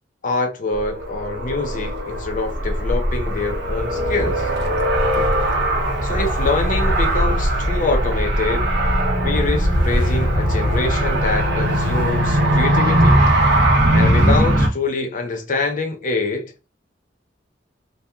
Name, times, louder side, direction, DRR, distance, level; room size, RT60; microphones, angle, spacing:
voice 1, 0.2-4.5 6.0-8.7 9.2-13.2 13.9-16.5, left 3 dB, 45° left, 0.5 m, -25 dB
Car, 0.7-14.7, right 1 dB, 60° right, 0.7 m, -19 dB
2.8 x 2.3 x 2.3 m
head